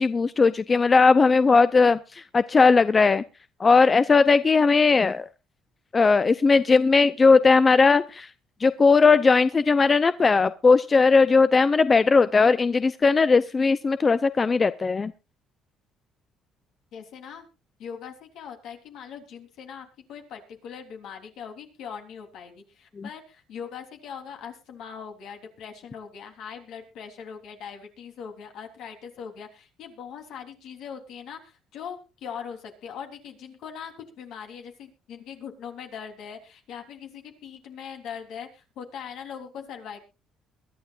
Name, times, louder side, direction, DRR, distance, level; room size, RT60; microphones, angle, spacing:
voice 1, 0.0-3.2 3.6-5.2 5.9-8.3 8.6-15.1 23.0-23.1, left 4 dB, 25° left, 14 dB, 0.6 m, -18 dB
voice 2, 16.9-17.5 17.8-40.0, left 7 dB, 70° left, 4 dB, 3.4 m, -41 dB
22.5 x 12.0 x 2.5 m, 0.30 s
cardioid pair, 115°, 0 cm